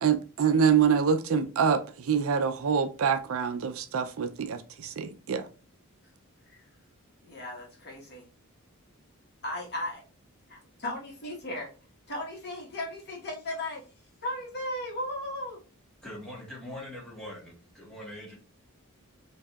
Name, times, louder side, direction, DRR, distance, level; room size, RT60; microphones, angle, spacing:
voice 1, 0.0-5.5, right 7 dB, 65° right, 9 dB, 0.4 m, -25 dB
voice 2, 7.2-8.2 9.4-10.0 10.5-11.7 12.1-13.8 14.2-15.6, left 1 dB, 45° left, -1 dB, 1.2 m, -36 dB
voice 3, 16.0-18.4, left 1 dB, 5° left, -4 dB, 1.3 m, -42 dB
4.6 x 2.7 x 2.3 m, 0.35 s
head